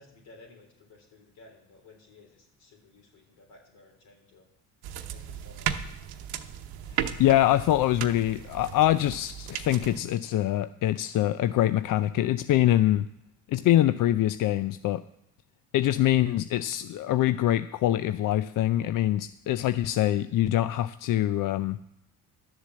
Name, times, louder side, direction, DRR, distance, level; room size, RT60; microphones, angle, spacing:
voice 1, 0.0-4.5 5.1-5.7, left 3 dB, 75° left, 0 dB, 3.9 m, -55 dB
sound 1, 4.8-10.0, right 10 dB, 75° right, 0.9 m, -35 dB
voice 2, 6.9-13.1 13.5-15.0 15.7-21.8, left 13 dB, 55° left, 13 dB, 0.5 m, -24 dB
11.5 x 7.3 x 7.3 m, 0.77 s
supercardioid pair, 75°, 38 cm